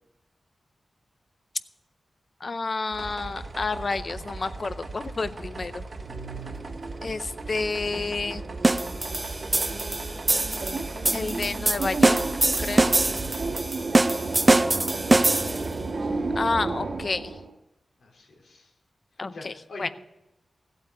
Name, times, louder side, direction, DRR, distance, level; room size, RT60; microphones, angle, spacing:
voice 1, 2.4-5.8 7.0-8.4 11.1-12.2 12.6-12.9 16.3-17.3 19.2-19.5 19.8-19.9, left 3 dB, 40° left, 13 dB, 0.6 m, -30 dB
sound 1, 2.9-13.6, right 3 dB, 40° right, 1.2 m, -38 dB
sound 2, 6.0-17.5, right 3 dB, 60° right, 1.5 m, -34 dB
sound 3, 8.6-15.7, right 2 dB, 20° right, 0.3 m, -23 dB
voice 2, 13.6-16.2 18.0-18.7 19.3-19.9, left 2 dB, 90° left, 0 dB, 3.6 m, -46 dB
16.5 x 8.4 x 4.7 m, 0.96 s
wide cardioid pair, 145°, 0 cm